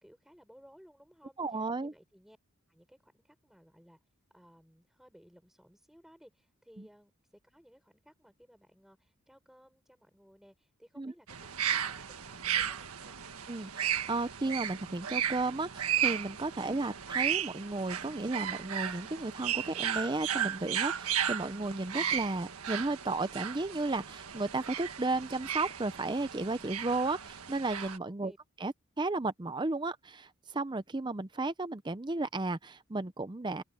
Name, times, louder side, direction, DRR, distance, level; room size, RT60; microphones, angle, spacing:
voice 1, 0.0-2.4 2.7-4.0 4.3-13.2 28.0-28.4, equal, ahead, 6.3 m, -60 dB
voice 2, 1.4-1.9 11.0-11.1 13.5-28.3 28.6-33.6, right 2 dB, 20° right, 0.5 m, -34 dB
sound 1, 11.3-28.0, right 9 dB, 80° right, 1.6 m, -35 dB
open air
head